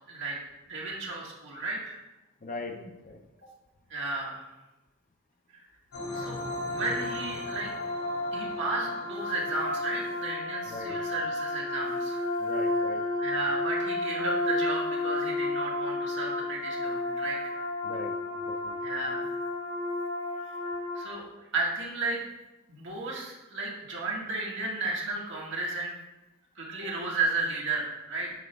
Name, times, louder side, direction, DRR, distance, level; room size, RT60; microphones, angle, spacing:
voice 1, 0.7-2.0 3.9-4.4 5.5-5.7 6.1-6.4 6.7-7.7 8.3-12.2 13.2-17.5 18.8-19.3 20.9-21.2 21.5-22.2 22.7-25.9 26.5-28.3, right 3 dB, 60° right, -3 dB, 1.6 m, -33 dB
voice 2, 2.4-3.2 10.7-11.0 12.4-13.0 17.8-18.1 18.5-18.8, left 3 dB, 40° left, 4 dB, 0.6 m, -40 dB
sound 1, 5.9-21.0, left 2 dB, 90° left, 2.7 m, -32 dB
9.0 x 4.9 x 3.4 m, 1.0 s
head